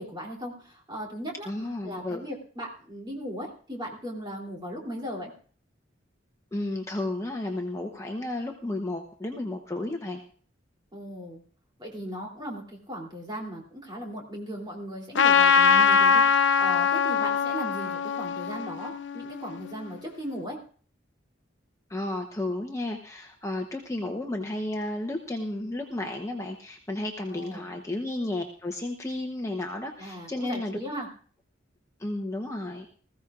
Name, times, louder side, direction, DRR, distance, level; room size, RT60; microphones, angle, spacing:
voice 1, 0.0-1.5 1.8-5.3 10.9-11.4 11.8-20.6 27.3-27.7 30.0-31.1, equal, 25° right, -1 dB, 3.1 m, -37 dB
voice 2, 1.5-2.2 6.5-10.2 21.9-30.8 32.0-32.9, left 1 dB, 15° left, 2 dB, 0.9 m, -32 dB
Trumpet, 15.1-19.8, left 6 dB, 70° left, 0.6 m, -22 dB
20.0 x 15.0 x 2.5 m, 0.44 s
head